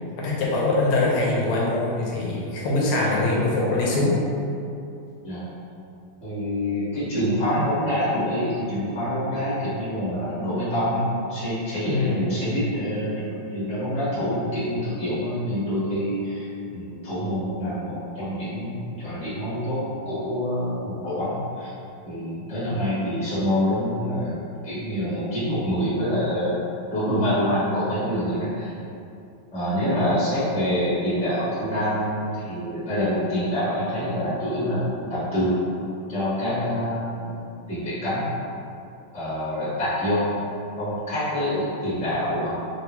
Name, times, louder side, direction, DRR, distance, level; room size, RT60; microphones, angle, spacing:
voice 1, 0.0-4.2 11.9-12.3, left 2 dB, 90° left, -4 dB, 1.6 m, -23 dB
voice 2, 6.2-13.2 13.5-21.7 22.0-26.6 26.8-28.7 29.5-35.6 36.1-38.4 39.1-40.3 40.8-42.6, equal, 5° left, -13 dB, 0.7 m, -26 dB
3.6 x 2.2 x 3.0 m, 2.6 s
omnidirectional pair, 2.4 m